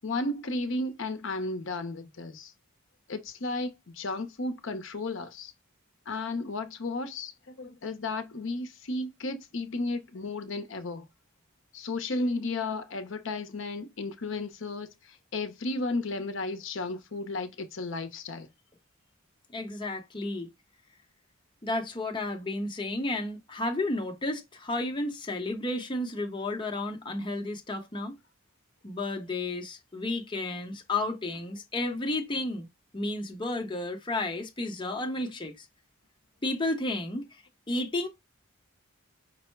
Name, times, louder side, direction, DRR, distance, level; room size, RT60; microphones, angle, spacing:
voice 1, 0.0-2.5 3.1-5.5 6.1-7.3 7.6-11.0 11.7-14.9 15.3-18.5, left 2 dB, 60° left, 0.7 m, -33 dB
voice 2, 19.5-20.5 21.6-28.1 28.8-32.7 32.9-35.7 36.4-37.2 37.7-38.1, left 2 dB, 20° left, 0.7 m, -32 dB
5.3 x 2.0 x 4.4 m
head